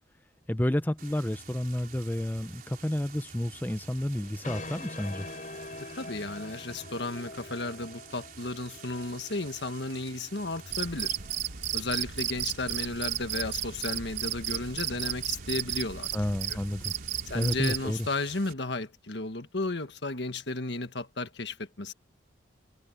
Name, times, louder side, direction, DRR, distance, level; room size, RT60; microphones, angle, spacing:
voice 1, 0.5-5.3 16.1-16.9 17.3-18.1, left 1 dB, 10° left, 0.6 m, -30 dB
sound 1, 1.0-18.5, right 6 dB, 50° right, 4.7 m, -49 dB
sound 2, 4.2-11.3, left 2 dB, 40° left, 5.2 m, -45 dB
voice 2, 6.0-11.1 11.7-16.1 17.2-21.9, left 2 dB, 70° left, 1.6 m, -34 dB
Cricket, 10.7-17.9, right 11 dB, 80° right, 1.8 m, -34 dB
head